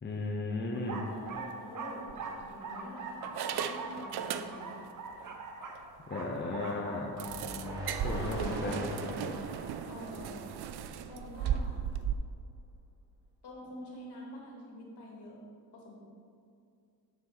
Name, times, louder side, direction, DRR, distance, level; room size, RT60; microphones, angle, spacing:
voice 1, 0.0-1.0 6.1-7.1 8.0-8.9, left 2 dB, 25° left, 0 dB, 0.9 m, -35 dB
sound 1, 0.7-8.4, right 4 dB, 50° right, 1.0 m, -43 dB
voice 2, 0.9-4.8 7.2-7.4 8.1-8.7 9.9-10.4 11.1-11.8 13.4-15.4 15.7-16.0, left 1 dB, 70° left, -2 dB, 2.4 m, -47 dB
sound 2, 1.2-1.4 2.1-2.8 3.2-4.9 5.2-5.3 5.8-5.9 6.2-6.3 7.2-12.1, right 8 dB, 65° right, 0.5 m, -37 dB
sound 3, 7.2-11.3, equal, 10° right, 2.3 m, -42 dB
7.2 x 6.4 x 5.8 m, 2.4 s
cardioid pair, 125°, 42 cm